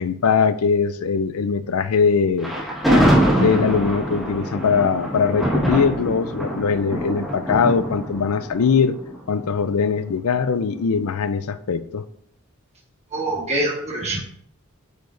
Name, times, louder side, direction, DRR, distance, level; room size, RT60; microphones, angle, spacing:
voice 1, 0.0-2.5 3.4-9.0 9.3-12.0, left 6 dB, 80° left, 0.5 m, -21 dB
Thunder, 2.4-9.6, right 1 dB, ahead, 2.0 m, -23 dB
voice 2, 13.1-14.2, right 1 dB, 30° right, 1.4 m, -24 dB
9.2 x 4.7 x 2.6 m
head